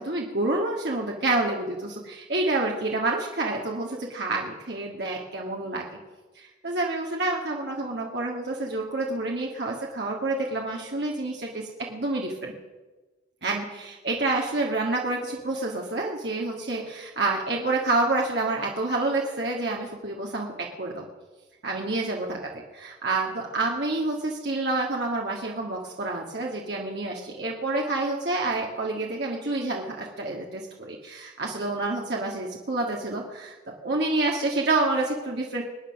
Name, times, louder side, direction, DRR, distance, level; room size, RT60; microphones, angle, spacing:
voice 1, 0.0-5.9 6.4-11.6 11.9-12.5 13.4-20.5 20.8-21.0 21.6-22.4 22.8-33.5 33.8-35.6, right 2 dB, 70° right, -1 dB, 1.9 m, -28 dB
23.0 x 9.5 x 5.9 m, 1.2 s
head